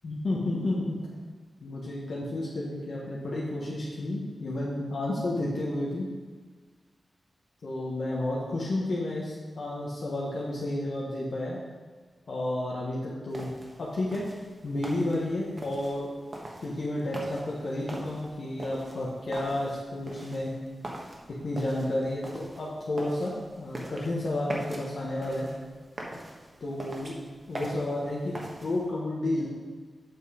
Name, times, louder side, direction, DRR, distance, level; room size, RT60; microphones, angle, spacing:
voice 1, 0.0-1.0 1.6-6.1 7.6-11.6 12.3-13.5 13.8-14.2 14.6-16.1 16.6-20.5 21.4-25.5 26.6-27.1 27.5-28.3 28.6-29.5, left 1 dB, 70° left, -6 dB, 1.4 m, -31 dB
sound 1, 13.3-28.9, right 1 dB, 35° right, 1.2 m, -43 dB
7.5 x 5.8 x 5.1 m, 1.5 s
wide cardioid pair, 120°, 0 cm